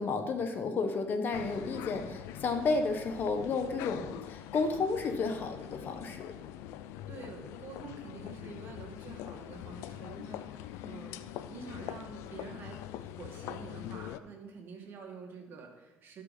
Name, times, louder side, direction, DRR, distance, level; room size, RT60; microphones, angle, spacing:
voice 1, 0.0-6.3, left 4 dB, 45° left, 6 dB, 1.1 m, -32 dB
sound 1, 1.3-14.2, left 12 dB, 80° left, 0.4 m, -44 dB
voice 2, 7.1-16.2, right 4 dB, 50° right, 2 dB, 1.9 m, -48 dB
12.5 x 5.7 x 4.1 m, 1.1 s
cardioid pair, 105°, 5 cm